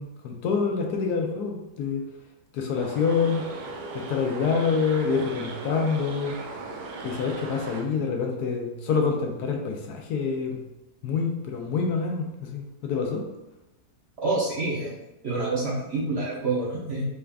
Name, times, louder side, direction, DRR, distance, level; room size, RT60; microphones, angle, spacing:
voice 1, 0.0-2.0 2.5-3.4 3.9-6.4 7.0-10.6 11.0-13.2, left 5 dB, 80° left, 2 dB, 1.2 m, -26 dB
sound 1, 2.7-7.9, right 2 dB, 75° right, 1.1 m, -37 dB
voice 2, 14.2-14.9 15.2-17.1, right 3 dB, 55° right, -4 dB, 0.8 m, -27 dB
4.2 x 2.4 x 3.3 m, 0.95 s
omnidirectional pair, 1.7 m